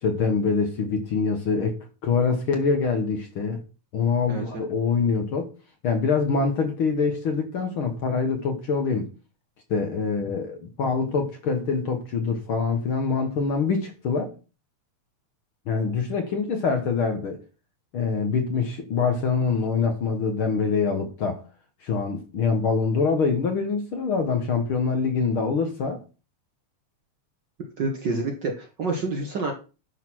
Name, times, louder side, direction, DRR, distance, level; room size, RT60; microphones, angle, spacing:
voice 1, 0.0-3.6 3.9-5.5 5.8-9.1 9.7-14.3 15.7-17.4 17.9-21.4 21.8-26.0, left 5 dB, 55° left, 1.6 m, -25 dB
voice 2, 4.3-4.6 27.8-29.5, right 3 dB, 50° right, 1.5 m, -28 dB
11.0 x 4.0 x 6.0 m
omnidirectional pair, 3.4 m